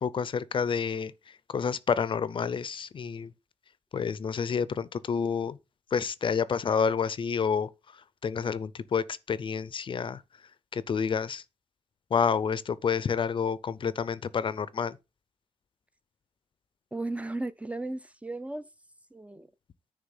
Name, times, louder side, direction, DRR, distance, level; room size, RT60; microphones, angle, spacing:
voice 1, 0.0-3.3 3.9-5.6 5.9-7.7 8.2-10.2 10.7-11.4 12.1-15.0, left 6 dB, 50° left, 0.5 m, -29 dB
voice 2, 16.9-18.7 19.1-19.5, right 2 dB, 10° right, 0.4 m, -35 dB
9.6 x 3.4 x 5.4 m
wide cardioid pair, 115°, 11 cm